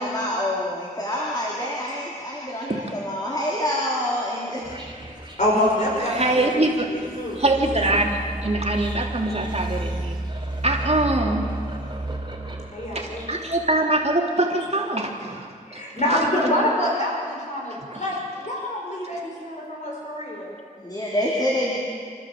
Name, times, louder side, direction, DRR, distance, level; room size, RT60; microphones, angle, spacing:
voice 1, 0.0-4.6 20.8-21.8, left 1 dB, 25° left, -5 dB, 3.8 m, -26 dB
sound 1, 4.6-13.8, right 1 dB, 30° right, 3.4 m, -33 dB
voice 2, 5.4-8.0 12.7-13.3 15.7-20.6, left 1 dB, 55° left, -3 dB, 5.6 m, -26 dB
voice 3, 6.1-6.9 7.4-10.2 10.6-11.5 12.9-15.8 16.1-16.2 17.9-18.0, right 2 dB, 45° right, -1 dB, 3.3 m, -23 dB
28.0 x 12.5 x 7.7 m, 2.1 s
wide cardioid pair, 45°, 15 cm